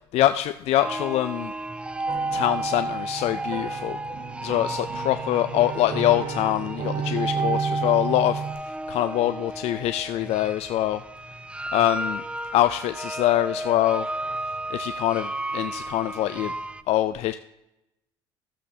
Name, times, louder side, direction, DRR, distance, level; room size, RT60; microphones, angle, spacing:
voice 1, 0.1-1.5 2.3-4.0 4.4-8.4 8.9-11.0 11.7-12.2 12.5-14.1 14.7-16.5 16.9-17.3, left 13 dB, 60° left, 10 dB, 0.4 m, -24 dB
sound 1, 0.8-16.8, right 2 dB, 10° right, 0.4 m, -32 dB
sound 2, 2.1-8.5, right 6 dB, 55° right, 1.4 m, -33 dB
13.5 x 7.4 x 2.7 m, 0.90 s
supercardioid pair, 80°, 12 cm